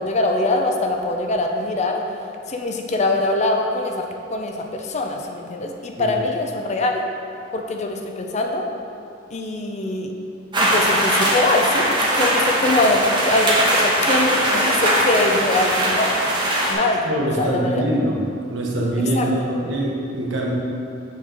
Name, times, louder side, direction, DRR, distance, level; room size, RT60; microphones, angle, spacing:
voice 1, 0.0-2.0 2.5-4.0 4.3-7.0 7.5-8.7 9.3-10.1 10.6-16.2 16.7-17.1 17.4-17.8 19.1-19.3, left 2 dB, 35° left, 3 dB, 0.5 m, -23 dB
sound 1, 10.5-16.7, right 1 dB, 25° right, 1.1 m, -20 dB
voice 2, 17.0-18.2 18.5-20.5, right 1 dB, 70° right, -3 dB, 1.1 m, -23 dB
7.3 x 3.9 x 4.4 m, 2.6 s
head